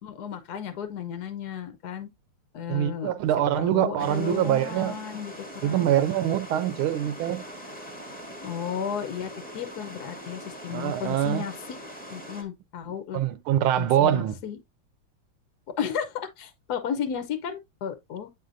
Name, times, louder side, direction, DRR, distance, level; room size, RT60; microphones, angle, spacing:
voice 1, 0.0-2.1 2.5-3.1 3.5-5.9 8.4-11.8 12.1-13.2 13.8-14.6 15.8-18.3, left 8 dB, 65° left, 1.1 m, -34 dB
voice 2, 2.7-5.0 5.6-7.4 10.7-11.4 13.1-14.4, right 11 dB, 80° right, 1.4 m, -24 dB
sound 1, 4.0-12.4, equal, 5° left, 0.8 m, -42 dB
8.3 x 5.1 x 2.5 m
omnidirectional pair, 2.4 m